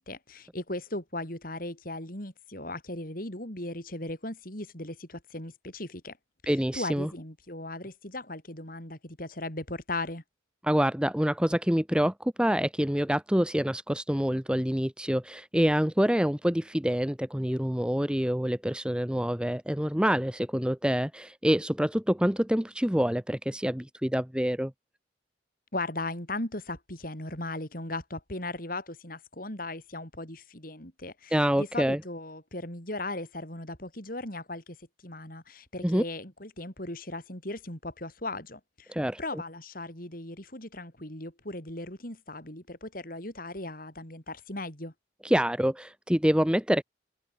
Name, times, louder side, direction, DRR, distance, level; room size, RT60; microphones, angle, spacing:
voice 1, 0.0-6.2 6.7-10.2 25.7-34.8 35.0-44.9, left 2 dB, 50° left, 5.3 m, -37 dB
voice 2, 6.5-7.1 10.6-24.7 31.3-32.0 35.8-36.0 38.9-39.4 45.2-46.8, equal, 5° right, 0.9 m, -26 dB
head